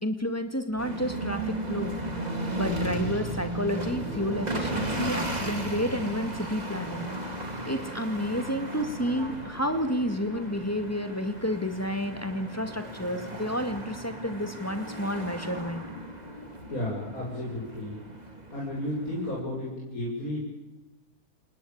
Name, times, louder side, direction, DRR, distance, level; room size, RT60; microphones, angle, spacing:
voice 1, 0.0-1.9 2.5-7.1 7.7-15.8, equal, 10° left, 7 dB, 2.2 m, -30 dB
sound 1, 0.8-19.4, right 1 dB, 25° right, 3.0 m, -35 dB
voice 2, 16.7-18.0 18.5-20.4, left 1 dB, 65° left, -5 dB, 6.7 m, -33 dB
28.5 x 19.5 x 8.9 m, 1.0 s
omnidirectional pair, 1.6 m